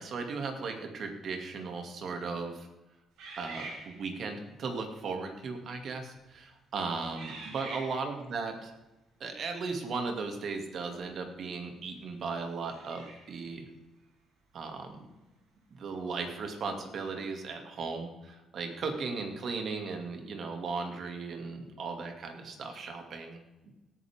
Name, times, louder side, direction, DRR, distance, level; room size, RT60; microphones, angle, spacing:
voice 1, 0.0-2.7 3.4-8.7 9.2-13.7 14.5-15.1 15.7-23.4 23.6-23.7, right 4 dB, 60° right, 4 dB, 2.4 m, -37 dB
sound 1, 3.2-4.4 5.1-5.4 6.1-6.4 7.1-8.3 11.0-11.1 12.6-13.4, right 3 dB, 85° right, 4.8 m, -45 dB
18.5 x 9.6 x 3.6 m, 1.0 s
cardioid pair, 90°, 0 cm